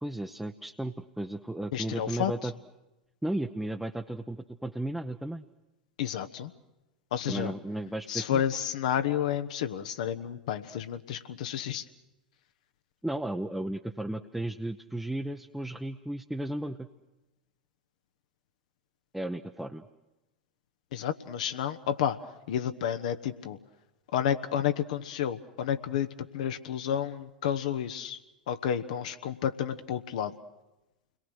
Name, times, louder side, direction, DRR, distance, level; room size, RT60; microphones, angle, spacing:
voice 1, 0.0-2.5 3.2-5.4 7.3-8.4 13.0-16.9 19.1-19.8, right 1 dB, ahead, 4 dB, 0.9 m, -34 dB
voice 2, 1.7-2.5 6.0-6.5 7.1-7.5 8.1-11.8 20.9-22.2 22.5-23.6 24.1-28.2 28.5-30.3, left 9 dB, 55° left, 8 dB, 1.1 m, -31 dB
29.5 x 22.0 x 6.4 m, 0.99 s
figure-of-eight pair, 90°, 5 cm